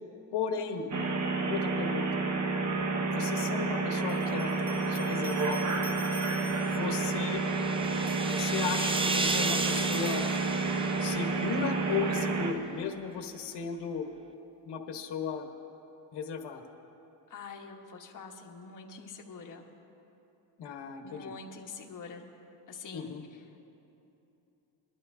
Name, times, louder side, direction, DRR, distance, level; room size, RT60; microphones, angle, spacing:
voice 1, 0.3-0.9 1.5-2.2 3.0-5.8 6.6-7.4 8.2-10.3 11.0-14.1 14.6-15.5 16.1-16.6 20.6-21.3 22.9-23.2, left 6 dB, 65° left, 5 dB, 1.2 m, -36 dB
sound 1, 0.9-12.5, right 3 dB, 40° right, 1.0 m, -30 dB
sound 2, 4.1-6.9 7.8-10.9, left 2 dB, 5° left, 2.3 m, -49 dB
sound 3, 6.4-12.0, right 3 dB, 15° right, 0.4 m, -34 dB
voice 2, 17.3-19.6 21.0-22.3 22.7-23.2, left 4 dB, 45° left, 0 dB, 1.3 m, -46 dB
22.0 x 12.0 x 2.7 m, 2.9 s
cardioid pair, 105°, 43 cm